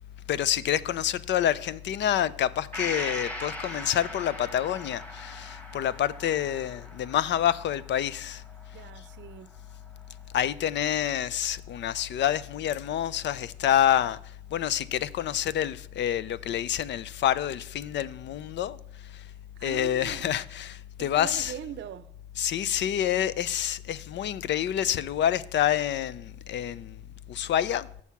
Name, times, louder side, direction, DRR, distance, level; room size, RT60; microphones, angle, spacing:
voice 1, 0.3-8.4 10.3-14.2 14.5-18.8 19.1-19.2 19.6-21.5 22.4-27.0 27.3-27.9, left 11 dB, 65° left, 0.5 m, -27 dB
Gong, 2.7-10.4 10.8-10.9, left 1 dB, 5° left, 1.4 m, -41 dB
voice 2, 8.7-9.5 19.6-20.4 21.0-22.1, right 10 dB, 65° right, 0.6 m, -41 dB
7.1 x 6.3 x 5.8 m
cardioid pair, 90°, 20 cm